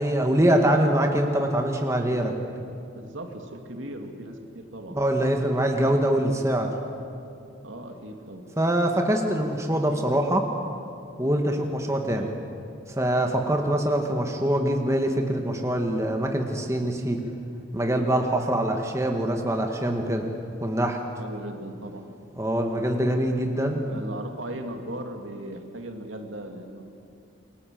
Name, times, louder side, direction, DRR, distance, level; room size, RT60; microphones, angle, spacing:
voice 1, 0.0-2.3 4.9-6.8 8.6-10.5 11.2-12.3 13.0-17.2 17.7-20.3 20.6-21.0 22.4-23.8, right 1 dB, 15° right, 3 dB, 1.9 m, -24 dB
voice 2, 2.9-5.0 7.6-8.5 9.3-9.5 12.0-12.4 21.2-22.1 23.9-26.8, right 1 dB, 80° right, 3 dB, 2.7 m, -38 dB
27.5 x 24.0 x 7.8 m, 2.5 s
head